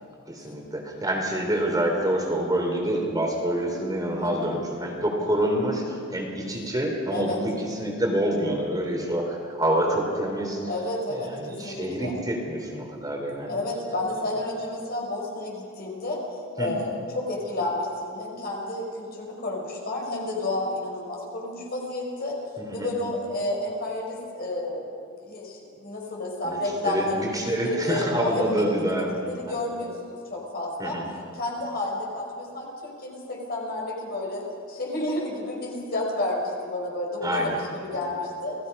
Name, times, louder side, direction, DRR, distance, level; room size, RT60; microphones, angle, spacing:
voice 1, 0.3-10.6 11.1-13.5 16.6-16.8 22.6-22.9 26.4-26.6 26.8-29.3 30.8-31.0 37.2-37.6, right 1 dB, 20° right, 1 dB, 3.3 m, -27 dB
voice 2, 4.2-4.6 7.1-7.4 10.7-12.1 13.5-16.2 16.6-22.4 22.7-24.9 25.2-31.0 31.3-38.6, left 2 dB, 50° left, -1 dB, 5.4 m, -31 dB
28.5 x 19.0 x 5.5 m, 2.6 s
head